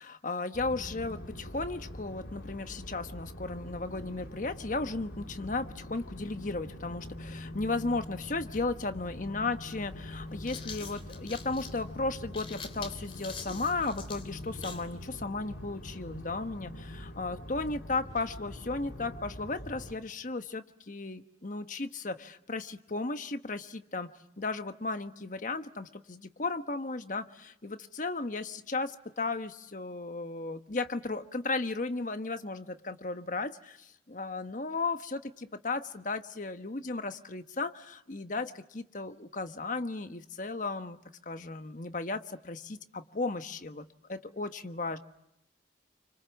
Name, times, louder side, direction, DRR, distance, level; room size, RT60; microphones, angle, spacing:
voice 1, 0.0-24.1 24.4-45.0, left 3 dB, 45° left, 9 dB, 1.2 m, -35 dB
sound 1, 0.5-19.9, left 1 dB, 80° left, 3.5 m, -44 dB
sound 2, 9.1-9.2 10.2-14.9, left 5 dB, 30° left, 3.4 m, -45 dB
30.0 x 25.5 x 7.2 m, 0.86 s
head